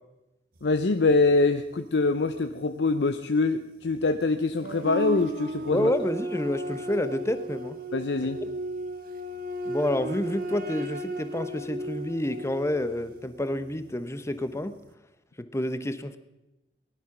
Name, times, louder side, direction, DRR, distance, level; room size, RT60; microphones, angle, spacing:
voice 1, 0.6-5.9 7.9-8.4, left 3 dB, 70° left, 9 dB, 0.7 m, -24 dB
sound 1, 4.6-14.0, right 1 dB, 55° right, 1.4 m, -35 dB
voice 2, 5.7-7.8 9.7-14.7 15.4-16.2, left 1 dB, 15° left, 11 dB, 0.9 m, -29 dB
19.0 x 11.5 x 6.0 m, 0.96 s
head